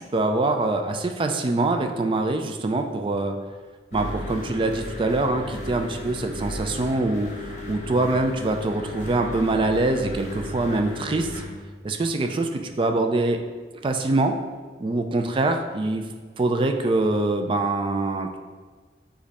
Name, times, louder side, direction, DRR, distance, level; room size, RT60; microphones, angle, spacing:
voice 1, 0.1-3.4 3.9-11.4 11.8-13.4 13.8-14.3 14.8-16.1 16.4-18.4, right 2 dB, 30° right, 5 dB, 0.3 m, -24 dB
sound 1, 3.9-11.4, left 1 dB, 40° left, 1.1 m, -35 dB
5.1 x 2.6 x 4.0 m, 1.4 s
head